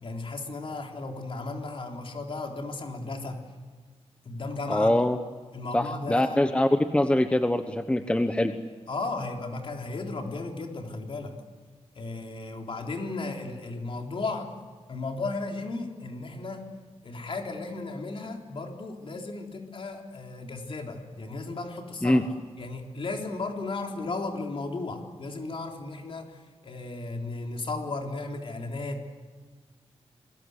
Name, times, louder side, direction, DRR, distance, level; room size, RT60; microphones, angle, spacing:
voice 1, 0.0-3.4 4.3-4.9 5.5-6.4 8.9-11.4 12.0-14.5 14.9-16.6 17.0-22.2 22.6-29.1, left 3 dB, 50° left, 2 dB, 3.7 m, -35 dB
voice 2, 4.7-5.2 5.7-8.5 22.0-22.2, left 1 dB, 10° left, 8 dB, 1.0 m, -23 dB
28.0 x 22.0 x 8.1 m, 1.5 s
wide cardioid pair, 155°, 11 cm